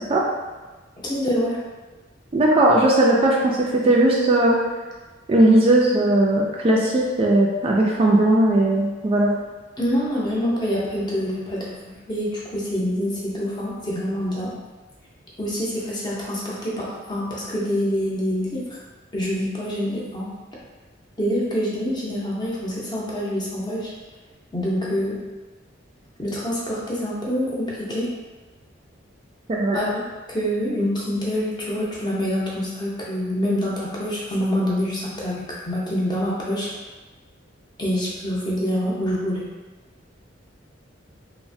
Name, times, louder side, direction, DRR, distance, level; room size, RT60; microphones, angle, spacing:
voice 1, 1.0-1.6 9.8-11.7 12.1-14.5 15.4-18.8 19.1-20.3 21.2-23.9 24.5-25.2 26.2-28.1 29.7-30.0 30.3-36.7 37.8-39.4, equal, 25° left, -6 dB, 0.6 m, -26 dB
voice 2, 2.3-4.6 5.3-9.3 29.5-29.8, right 1 dB, 30° right, -3 dB, 0.3 m, -18 dB
3.0 x 2.1 x 2.6 m, 1.2 s
head